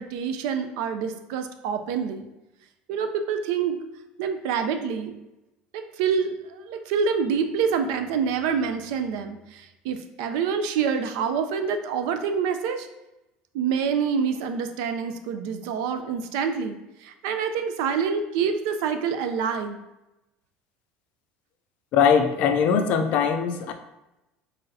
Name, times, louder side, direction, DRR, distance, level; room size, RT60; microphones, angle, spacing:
voice 1, 0.0-2.3 2.9-3.8 4.2-5.1 6.0-12.9 13.5-19.8, right 6 dB, 85° right, 7 dB, 0.5 m, -27 dB
voice 2, 21.9-23.7, left 7 dB, 50° left, 7 dB, 0.4 m, -21 dB
4.0 x 3.8 x 2.7 m, 0.96 s
cardioid pair, 160°, 3 cm